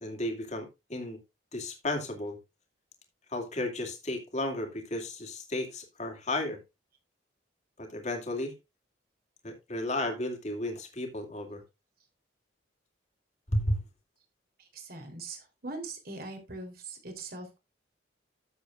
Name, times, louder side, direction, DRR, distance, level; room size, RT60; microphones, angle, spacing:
voice 1, 0.0-1.2 1.5-2.4 3.3-6.6 7.8-8.5 9.4-11.6 13.5-13.8, left 1 dB, 35° left, 2.5 m, -33 dB
voice 2, 14.6-17.6, right 3 dB, 50° right, 3.4 m, -41 dB
13.5 x 7.6 x 2.4 m
head